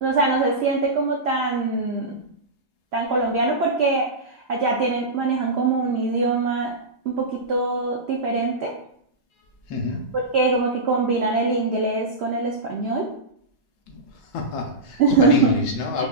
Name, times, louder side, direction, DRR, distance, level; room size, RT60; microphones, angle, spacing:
voice 1, 0.0-2.2 2.9-4.1 4.5-6.7 7.1-8.7 10.3-13.1 15.0-15.6 16.0-16.1, right 3 dB, 85° right, -1 dB, 0.5 m, -22 dB
voice 2, 9.7-10.1 13.9-14.0 14.3-16.1, left 4 dB, 80° left, 2 dB, 1.2 m, -27 dB
4.9 x 2.4 x 2.3 m, 0.67 s
omnidirectional pair, 1.7 m